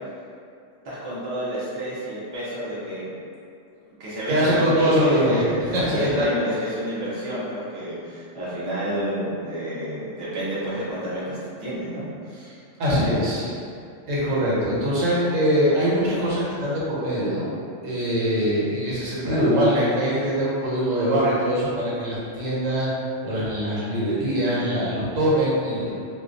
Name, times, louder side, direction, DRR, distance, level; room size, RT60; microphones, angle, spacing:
voice 1, 0.8-3.1 3.8-12.6 12.9-13.1 19.2-19.5 24.6-24.7, equal, 35° right, -10 dB, 0.4 m, -30 dB
voice 2, 4.3-5.4 5.7-6.3 12.8-13.5 14.1-17.5 17.8-22.9 23.2-25.9, equal, 80° right, -7 dB, 1.1 m, -22 dB
2.3 x 2.2 x 2.5 m, 2.5 s
omnidirectional pair, 1.3 m